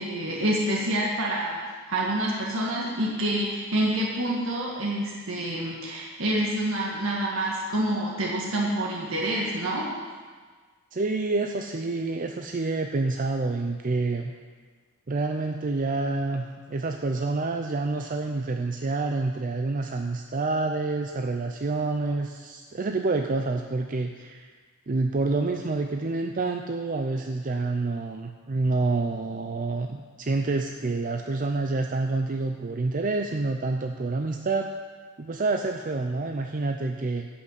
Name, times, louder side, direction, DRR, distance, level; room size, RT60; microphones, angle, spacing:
voice 1, 0.0-1.6 1.9-9.9, right 1 dB, 70° right, -3 dB, 1.8 m, -27 dB
voice 2, 10.9-14.3 15.1-24.5 24.9-34.7 35.2-37.3, right 3 dB, 40° right, 4 dB, 0.5 m, -28 dB
11.5 x 5.8 x 8.1 m, 1.5 s
head